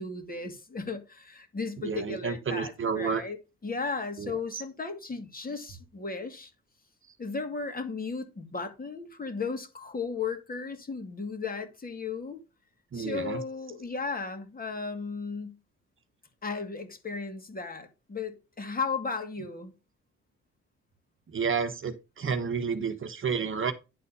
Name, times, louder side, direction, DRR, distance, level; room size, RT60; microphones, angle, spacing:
voice 1, 0.0-3.4 3.6-6.5 7.2-12.4 12.9-15.6 16.4-19.7, left 4 dB, 30° left, 2.4 m, -35 dB
voice 2, 1.8-3.2 4.2-4.6 12.9-13.4 21.3-23.7, right 6 dB, 40° right, 1.2 m, -31 dB
10.5 x 4.2 x 5.4 m
cardioid pair, 90°, 30 cm